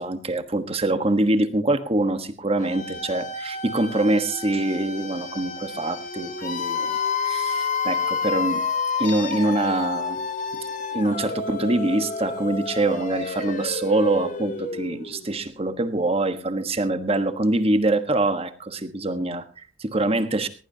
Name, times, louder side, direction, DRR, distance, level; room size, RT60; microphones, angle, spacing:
voice 1, 0.0-8.6 9.0-10.2 10.9-20.5, right 2 dB, 35° right, 9 dB, 1.4 m, -24 dB
sound 1, 2.6-15.4, left 5 dB, 50° left, 2.2 m, -30 dB
19.5 x 17.5 x 2.9 m, 0.35 s
head